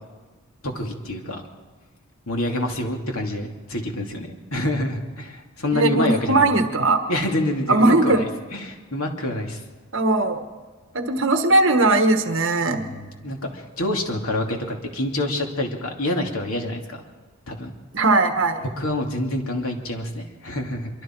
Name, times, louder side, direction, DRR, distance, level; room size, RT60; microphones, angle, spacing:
voice 1, 0.6-1.4 2.3-6.6 7.1-9.6 12.7-17.0 17.5-17.7 18.8-20.9, left 1 dB, 80° left, 2 dB, 2.8 m, -27 dB
voice 2, 5.7-7.0 7.7-8.2 9.9-10.4 10.9-12.8 17.9-18.6, right 2 dB, 60° right, 7 dB, 1.3 m, -19 dB
25.0 x 24.0 x 4.6 m, 1.4 s
head